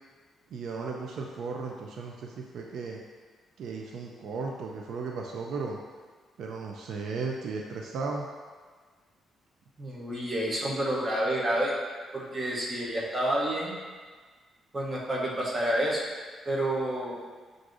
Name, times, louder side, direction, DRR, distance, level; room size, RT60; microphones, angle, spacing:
voice 1, 0.5-3.0 3.6-5.8 6.4-8.3, right 4 dB, 65° right, 0 dB, 0.3 m, -35 dB
voice 2, 9.8-11.7 12.1-13.8 14.7-16.0 16.5-17.2, right 1 dB, 20° right, -4 dB, 0.7 m, -29 dB
6.0 x 2.5 x 2.5 m, 1.5 s
cardioid pair, 130°, 0 cm